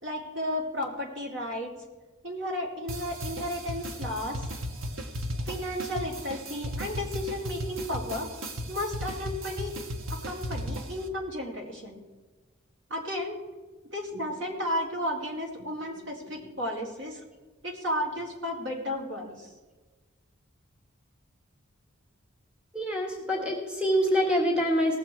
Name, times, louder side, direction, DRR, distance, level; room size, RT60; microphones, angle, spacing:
voice 1, 0.0-1.7 2.2-4.4 5.5-8.3 8.7-9.7 10.1-12.0 12.9-13.4 13.9-17.2 17.6-19.5, left 1 dB, 60° right, 0 dB, 2.6 m, -33 dB
sound 1, 2.9-11.1, equal, 75° right, 1.1 m, -36 dB
voice 2, 22.7-25.0, equal, 5° right, -1 dB, 1.6 m, -25 dB
18.5 x 7.3 x 4.5 m, 1.3 s
head